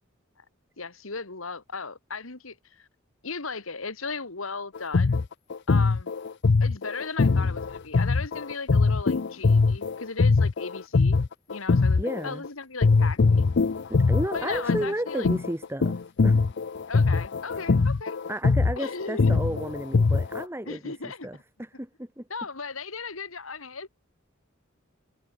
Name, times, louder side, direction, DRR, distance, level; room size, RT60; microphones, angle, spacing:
voice 1, 0.8-2.9 3.2-5.2 5.7-6.1 6.6-11.2 11.5-13.5 14.3-15.3 16.9-18.2 18.8-19.4 20.6-21.4 22.3-23.9, left 4 dB, 85° left, 2.5 m, -37 dB
sound 1, 4.7-12.5 12.8-20.4, left 4 dB, 60° left, 0.5 m, -22 dB
voice 2, 12.0-12.4 13.9-16.0 16.2-16.4 18.3-22.3, right 1 dB, 10° right, 3.9 m, -33 dB
head